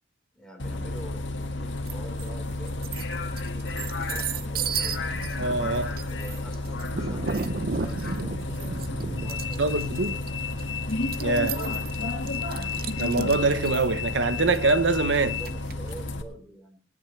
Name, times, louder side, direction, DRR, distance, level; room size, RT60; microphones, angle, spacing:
voice 1, 0.3-5.0 6.1-10.5 11.5-11.9 15.2-16.8, right 1 dB, 5° left, 4.3 m, -46 dB
Bus, 0.6-16.2, left 3 dB, 80° left, 1.7 m, -31 dB
sound 1, 1.9-2.3 2.7-15.9, right 5 dB, 55° right, 0.7 m, -35 dB
voice 2, 5.4-6.0 9.6-10.1 11.2-11.6 13.0-15.3, right 3 dB, 85° right, 1.0 m, -24 dB
25.5 x 10.0 x 3.3 m
head